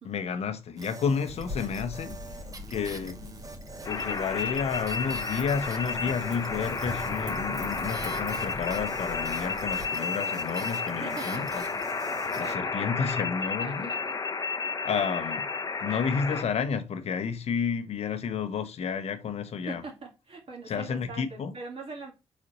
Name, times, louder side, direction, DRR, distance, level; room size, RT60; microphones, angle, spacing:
voice 1, 0.0-3.2 3.8-11.6 12.3-13.9 14.8-15.5 15.8-19.8 20.7-21.5, left 6 dB, 70° left, 0.7 m, -31 dB
sound 1, 0.8-12.6, right 3 dB, 30° right, 0.8 m, -45 dB
Wind / Fire, 1.3-9.8, left 1 dB, 85° right, 2.2 m, -42 dB
sound 2, 3.8-16.4, left 4 dB, 30° left, 0.6 m, -32 dB
voice 2, 11.0-11.6 12.4-12.8 13.6-14.1 15.0-15.1 19.7-22.1, right 3 dB, 55° right, 1.8 m, -42 dB
4.1 x 4.0 x 2.9 m
supercardioid pair, 55°, 11 cm